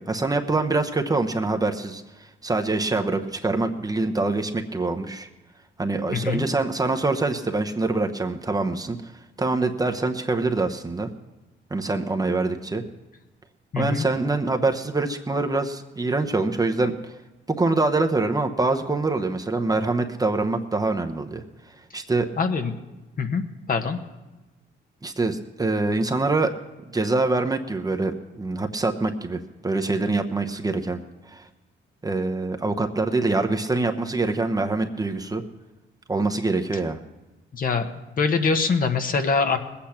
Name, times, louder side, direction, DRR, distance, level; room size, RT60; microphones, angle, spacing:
voice 1, 0.0-2.0 2.4-5.3 5.8-9.1 9.4-11.1 11.7-12.8 13.8-17.1 17.5-21.4 21.9-22.3 25.0-26.5 26.9-31.0 31.3-31.4 32.0-35.4 36.1-37.0, right 3 dB, 20° right, 4 dB, 0.9 m, -24 dB
voice 2, 6.1-6.4 13.7-14.1 22.4-22.7 23.2-23.4 23.7-24.0 37.5-37.9 38.2-39.6, left 5 dB, 45° left, 6 dB, 1.2 m, -23 dB
19.5 x 8.6 x 5.9 m, 1.1 s
cardioid pair, 90°, 20 cm